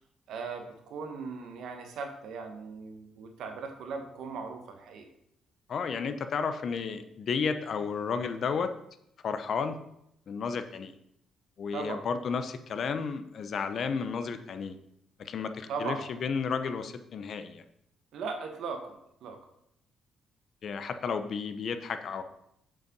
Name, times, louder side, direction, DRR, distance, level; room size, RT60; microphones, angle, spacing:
voice 1, 0.3-5.1 11.7-12.0 15.7-16.1 18.1-19.4, right 4 dB, 75° right, 4 dB, 1.3 m, -38 dB
voice 2, 5.7-8.7 9.2-9.8 10.3-10.9 11.6-14.7 15.2-17.6 20.6-22.2, left 5 dB, 60° left, 9 dB, 0.8 m, -32 dB
7.5 x 5.5 x 5.3 m, 0.76 s
cardioid pair, 90°, 0 cm